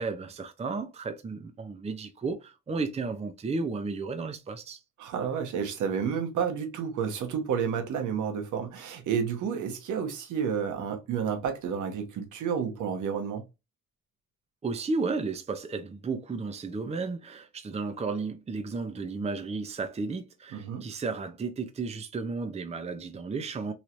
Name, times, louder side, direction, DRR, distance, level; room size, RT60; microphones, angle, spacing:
voice 1, 0.0-4.8 14.6-23.7, right 4 dB, 20° right, 0.5 m, -33 dB
voice 2, 5.0-13.4 20.5-20.8, right 7 dB, 75° right, 1.1 m, -30 dB
3.1 x 2.8 x 2.5 m
cardioid pair, 90°, 30 cm